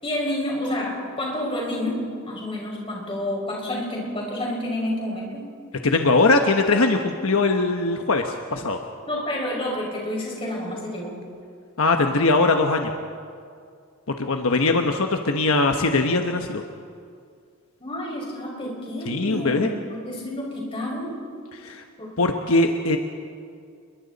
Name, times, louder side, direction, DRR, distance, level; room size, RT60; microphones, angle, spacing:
voice 1, 0.0-5.5 9.1-11.2 17.8-21.2 22.0-22.2, left 1 dB, 25° left, -2 dB, 5.7 m, -29 dB
voice 2, 5.8-8.8 11.8-12.9 14.1-16.6 19.1-19.7 21.5-21.8 22.2-23.0, left 3 dB, 75° left, 4 dB, 1.1 m, -21 dB
28.5 x 22.5 x 4.1 m, 2.3 s
head